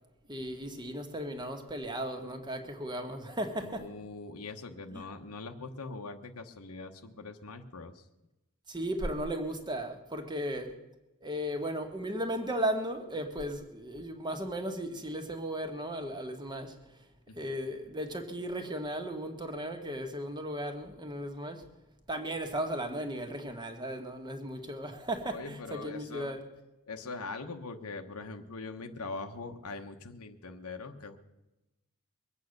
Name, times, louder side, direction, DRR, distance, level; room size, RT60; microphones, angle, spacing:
voice 1, 0.3-3.9 4.9-5.1 8.7-10.7 11.2-16.8 17.3-21.6 22.1-26.4, right 1 dB, 20° right, 5 dB, 1.6 m, -36 dB
voice 2, 3.6-8.0 17.3-17.4 25.3-26.3 26.9-31.2, left 3 dB, 90° left, 4 dB, 1.1 m, -42 dB
22.5 x 8.4 x 6.6 m, 0.99 s
head